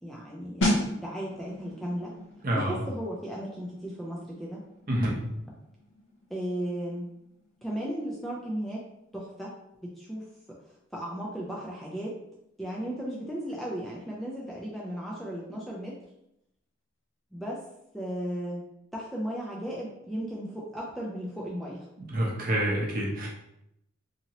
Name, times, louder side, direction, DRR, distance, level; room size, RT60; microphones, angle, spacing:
voice 1, 0.0-2.1 2.5-4.6 6.3-7.1 7.6-8.8 9.1-9.5 9.8-10.3 10.9-12.2 12.6-16.0 17.3-17.6 17.9-18.6 18.9-21.9, equal, ahead, -4 dB, 0.4 m, -35 dB
sound 1, 0.6-11.1 11.4-11.6, left 1 dB, 65° left, 0.6 m, -36 dB
voice 2, 2.4-2.8 4.9-5.2 22.1-23.3, right 1 dB, 45° right, -2 dB, 0.7 m, -27 dB
2.9 x 2.7 x 2.8 m, 0.79 s
head